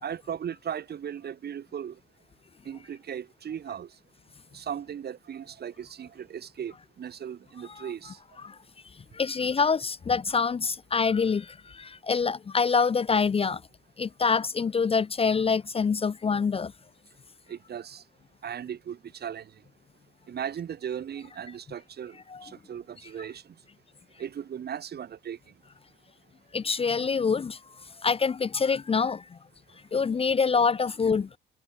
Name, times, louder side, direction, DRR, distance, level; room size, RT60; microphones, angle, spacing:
voice 1, 0.0-2.0 2.7-3.9 4.5-8.2 17.5-18.0 18.4-19.5 20.3-22.2 22.4-23.4 24.2-25.4, right 8 dB, 55° right, 1.8 m, -37 dB
voice 2, 9.1-13.6 14.0-16.7 22.3-22.5 26.5-27.6 28.0-29.4 29.9-31.3, left 5 dB, 30° left, 0.6 m, -26 dB
cardioid pair, 90°, 20 cm